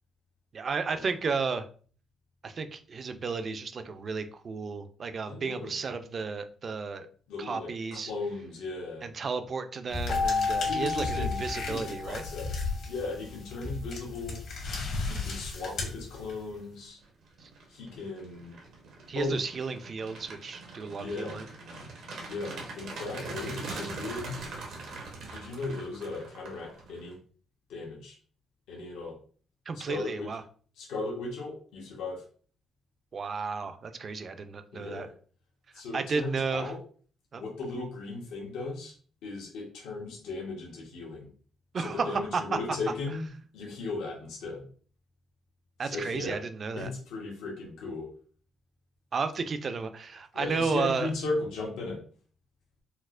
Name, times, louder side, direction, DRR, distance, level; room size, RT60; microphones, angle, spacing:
voice 1, 0.5-1.7 2.4-7.1 7.4-8.1 9.0-12.2 17.4-17.5 19.1-21.4 29.7-30.4 33.1-35.1 35.9-36.7 37.3-37.4 41.7-42.4 45.8-46.9 49.1-51.1, right 4 dB, 45° right, 9 dB, 0.4 m, -33 dB
voice 2, 5.2-5.7 7.3-9.1 10.6-12.5 12.9-14.4 15.0-17.0 17.7-18.6 19.1-19.4 21.0-21.4 22.3-24.4 25.2-27.2 27.7-28.2 28.7-29.2 29.7-30.3 30.8-32.2 34.7-35.1 35.7-36.8 37.4-38.9 39.2-41.3 41.8-44.6 45.8-46.4 46.8-48.1 50.3-52.0, left 3 dB, 90° left, -2 dB, 0.9 m, -37 dB
sound 1, 9.9-16.6, left 3 dB, 70° left, 1.2 m, -35 dB
Keyboard (musical), 10.1-12.7, left 4 dB, 50° left, 0.5 m, -31 dB
sound 2, 16.3-16.6 17.0-27.1, right 3 dB, 80° right, 0.9 m, -42 dB
4.3 x 2.0 x 2.4 m, 0.43 s
cardioid pair, 90°, 0 cm